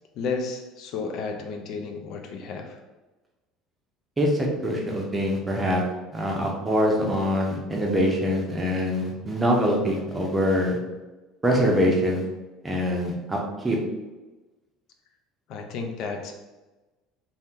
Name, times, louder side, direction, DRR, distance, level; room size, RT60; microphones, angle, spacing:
voice 1, 0.1-2.8 15.5-16.3, left 4 dB, 60° left, 4 dB, 0.4 m, -32 dB
voice 2, 4.2-5.8 6.1-10.8 11.4-12.2 12.6-13.4 13.6-13.8, equal, 15° right, 0 dB, 0.6 m, -24 dB
2.7 x 2.1 x 3.5 m, 1.1 s
cardioid pair, 130°, 0 cm